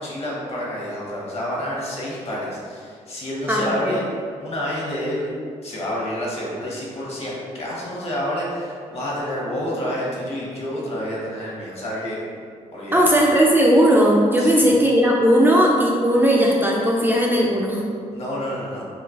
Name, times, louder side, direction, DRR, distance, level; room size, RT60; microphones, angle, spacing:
voice 1, 0.0-4.1 4.4-5.3 5.6-12.2 12.7-13.0 14.4-14.7 18.1-18.8, equal, 45° left, -5 dB, 0.9 m, -29 dB
voice 2, 3.5-4.0 12.9-17.9, equal, 15° right, -3 dB, 0.4 m, -17 dB
3.0 x 2.1 x 2.4 m, 2.2 s
supercardioid pair, 65°, 14 cm